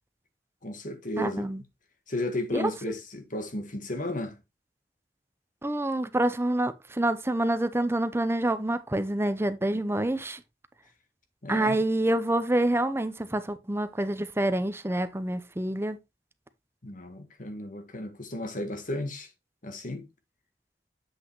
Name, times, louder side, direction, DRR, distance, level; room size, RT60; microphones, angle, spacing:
voice 1, 0.6-1.5 2.1-4.4 11.4-11.8 16.8-19.3 19.6-20.1, left 1 dB, 50° left, 1.5 m, -34 dB
voice 2, 1.2-1.6 2.5-2.7 5.6-10.4 11.5-16.0, right 1 dB, 15° right, 0.6 m, -27 dB
8.0 x 6.2 x 3.1 m
head